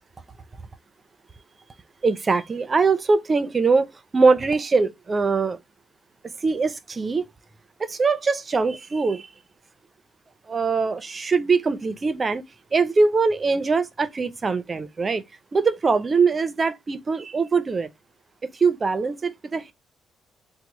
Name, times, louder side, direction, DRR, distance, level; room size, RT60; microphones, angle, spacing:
voice 1, 2.0-5.6 6.4-7.3 7.8-9.3 10.5-12.4 12.7-15.2 15.5-17.9 18.5-19.7, right 4 dB, 35° right, 0.4 m, -22 dB
2.9 x 2.0 x 4.1 m
cardioid pair, 90°, 0 cm